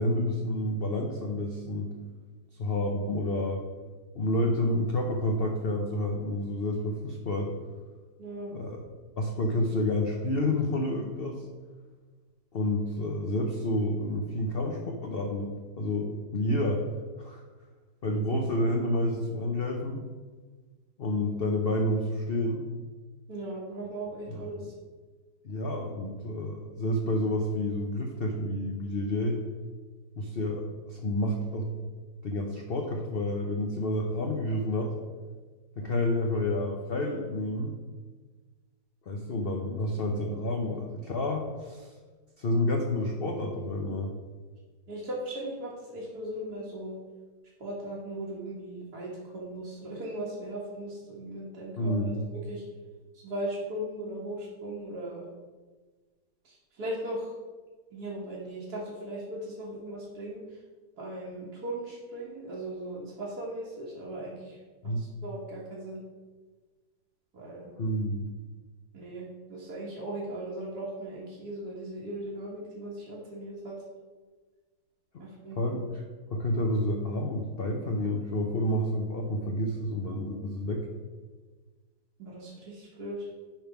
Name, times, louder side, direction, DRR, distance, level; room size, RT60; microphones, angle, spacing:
voice 1, 0.0-1.9 2.5-3.6 4.1-7.5 8.5-8.8 9.2-11.5 12.5-16.8 17.2-17.4 18.0-20.0 21.0-22.6 24.5-24.7 25.4-29.4 30.2-31.7 32.2-34.9 35.8-37.8 39.1-41.9 42.4-44.1 51.8-52.2 64.8-65.0 67.8-68.3 75.1-75.2 75.6-76.0 76.3-80.9, left 1 dB, 50° left, 1 dB, 0.7 m, -29 dB
voice 2, 8.2-8.6 23.3-24.7 44.9-47.0 47.6-52.6 53.1-55.2 56.4-57.3 57.9-60.6 61.0-66.0 67.3-67.7 68.9-73.8 75.2-75.6 82.2-83.3, right 1 dB, 65° right, -6 dB, 1.9 m, -38 dB
10.5 x 3.6 x 5.8 m, 1.4 s
omnidirectional pair, 1.9 m